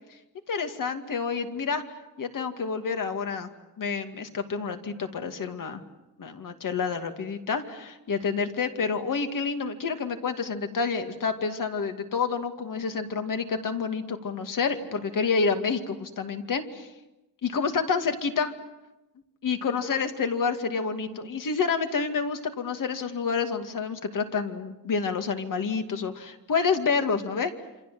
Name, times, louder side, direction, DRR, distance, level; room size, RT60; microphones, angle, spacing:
voice 1, 0.5-1.8 2.2-3.5 3.8-5.8 6.2-16.9 17.4-18.5 19.4-27.5, left 5 dB, 65° left, 7 dB, 2.4 m, -28 dB
28.0 x 26.0 x 7.8 m, 1.0 s
wide cardioid pair, 140°, 35 cm